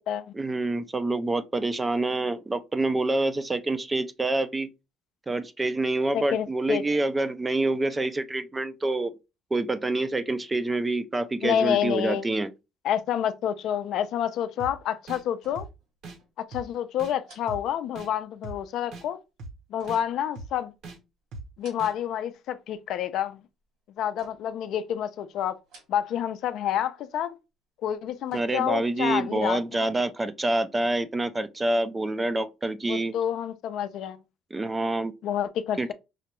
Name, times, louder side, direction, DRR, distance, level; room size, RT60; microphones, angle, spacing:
voice 1, 0.3-4.7 5.3-9.1 9.5-12.5 28.3-33.1 34.5-35.1 35.8-35.9, right 2 dB, 15° right, 0.3 m, -27 dB
voice 2, 6.1-6.8 11.4-12.3 12.8-15.7 16.4-19.2 19.7-20.7 21.6-23.4 24.0-25.6 25.9-27.3 27.8-29.9 32.9-34.2 35.2-35.9, left 10 dB, 60° left, 0.4 m, -28 dB
sound 1, 14.6-14.7 15.1-15.2 15.6-15.7 16.0-16.2 16.5-16.6 17.0-17.1 17.5-17.6 18.0-18.1 18.4-18.6 18.9-19.0 19.4-19.5 19.9-20.0 20.4-20.5 20.8-21.0 21.3-21.4 21.8-21.9, right 2 dB, 60° right, 0.9 m, -39 dB
sound 2, 15.3-15.9 16.2-16.3 17.2-18.3 19.8-20.9 21.4-22.2 22.5-23.1 24.2-24.7 25.5-26.3 26.6-26.7 27.8-29.0 29.4-29.5, right 2 dB, 80° right, 2.0 m, -55 dB
4.8 x 2.2 x 2.9 m
cardioid pair, 150°, 0 cm